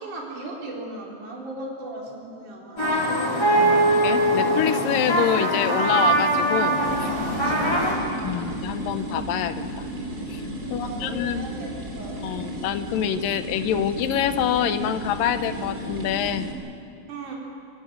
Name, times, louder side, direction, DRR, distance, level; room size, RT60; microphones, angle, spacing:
voice 1, 0.0-2.9 7.3-8.1 10.6-12.2 17.1-17.3, right 2 dB, 60° right, -3 dB, 5.5 m, -37 dB
sound 1, 2.8-7.9, right 1 dB, 5° left, 3.9 m, -22 dB
voice 2, 3.6-7.1 8.2-9.9 10.3-10.4 10.7-11.4 12.2-16.5, left 9 dB, 80° left, 11 dB, 2.5 m, -26 dB
sound 2, 6.8-16.5, right 1 dB, 25° right, 3.3 m, -33 dB
25.5 x 15.5 x 9.4 m, 2.6 s
omnidirectional pair, 4.1 m